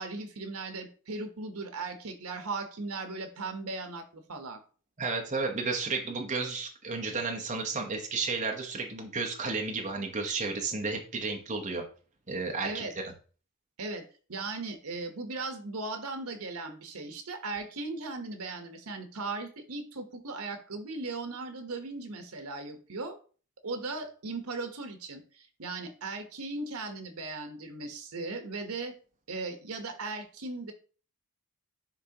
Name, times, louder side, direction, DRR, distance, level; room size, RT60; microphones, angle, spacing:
voice 1, 0.0-4.6 12.6-12.9 13.8-14.0 14.3-23.2 23.6-28.9 29.3-30.7, right 3 dB, 80° right, 7 dB, 1.1 m, -37 dB
voice 2, 5.0-11.8 12.3-12.8, right 4 dB, 35° right, 1 dB, 1.0 m, -32 dB
10.0 x 3.6 x 2.9 m, 0.39 s
head